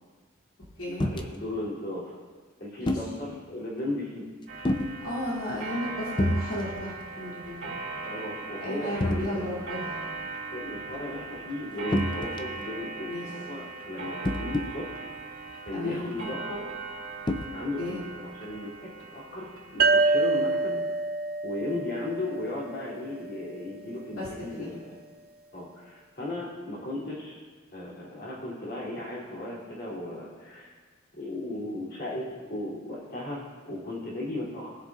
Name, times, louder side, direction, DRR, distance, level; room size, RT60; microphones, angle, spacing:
voice 1, 0.9-2.1 2.6-4.3 7.7-9.5 10.5-15.1 15.7-16.7 17.5-20.8 21.4-25.0 25.5-27.4 27.7-30.7 31.2-32.2 32.5-34.8, left 1 dB, 45° left, -6 dB, 2.8 m, -36 dB
sound 1, 1.0-1.3 2.9-3.1 4.6-4.9 6.2-6.5 6.8-7.0 7.4-7.5 9.0-9.3 11.9-12.6 14.2-14.7 15.7-15.8 17.3-17.5, left 1 dB, 20° left, 0.4 m, -27 dB
Clock, 4.5-20.6, right 3 dB, 70° right, 2.4 m, -39 dB
voice 2, 5.0-7.7 8.6-10.0 13.0-13.3 15.7-16.1 17.8-18.0 24.2-24.3 24.6-24.8, left 1 dB, 80° left, -7 dB, 2.6 m, -34 dB
sound 2, 19.8-23.2, right 3 dB, 45° right, 0.5 m, -26 dB
18.5 x 7.2 x 2.4 m, 1.4 s
head